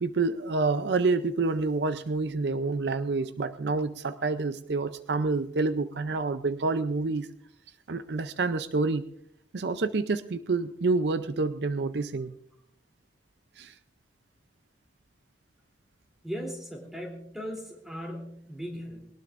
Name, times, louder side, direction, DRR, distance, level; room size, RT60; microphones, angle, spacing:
voice 1, 0.0-7.3 7.9-9.1 9.5-12.3 13.6-13.7, right 3 dB, 65° right, 12 dB, 0.5 m, -28 dB
voice 2, 16.2-19.1, equal, ahead, -1 dB, 3.1 m, -38 dB
22.0 x 19.0 x 2.5 m, 0.72 s
head